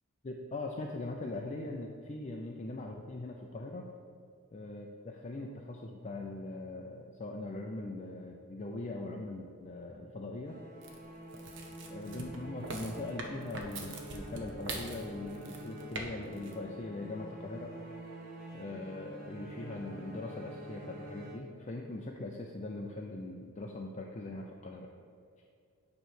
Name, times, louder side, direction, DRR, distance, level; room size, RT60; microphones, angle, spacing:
voice 1, 0.2-3.9 4.5-10.6 11.9-17.8 18.5-24.9, left 2 dB, 30° left, 0 dB, 0.5 m, -41 dB
sound 1, 10.4-21.9, right 1 dB, 40° right, 1.2 m, -47 dB
sound 2, 10.8-16.1 16.3-16.5, right 3 dB, 60° right, 0.9 m, -43 dB
9.0 x 3.1 x 6.4 m, 2.4 s
head